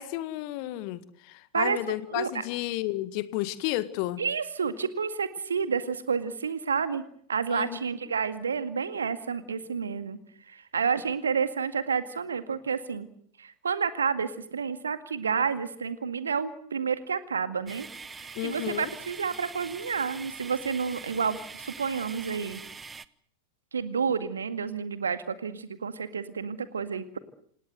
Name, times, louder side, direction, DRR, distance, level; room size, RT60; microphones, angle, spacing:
voice 1, 0.0-4.2 7.5-7.8 18.4-18.9, left 16 dB, 45° left, 14 dB, 1.8 m, -32 dB
voice 2, 1.5-2.3 4.2-7.0 7.3-10.2 10.5-13.1 13.4-17.9 18.2-22.6 23.7-27.2, right 6 dB, 70° right, 10 dB, 2.1 m, -30 dB
sound 1, 17.7-23.1, right 5 dB, 15° right, 0.9 m, -43 dB
27.5 x 18.0 x 8.1 m, 0.64 s
figure-of-eight pair, 90°, 0 cm